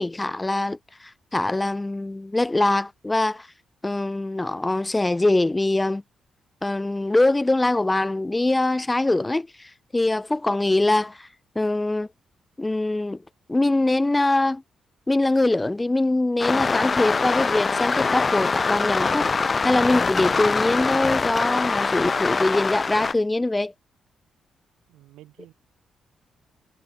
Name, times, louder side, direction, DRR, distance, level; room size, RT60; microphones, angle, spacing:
voice 1, 0.0-3.5 3.8-6.0 6.6-11.3 11.6-12.1 12.6-13.2 13.5-14.6 15.1-23.7, left 2 dB, 20° left, 0.4 m, -23 dB
sound 1, 16.4-23.1, left 4 dB, 40° left, 1.5 m, -23 dB
voice 2, 24.9-25.5, right 15 dB, 85° right, 7.0 m, -49 dB
supercardioid pair, 50°, 0 cm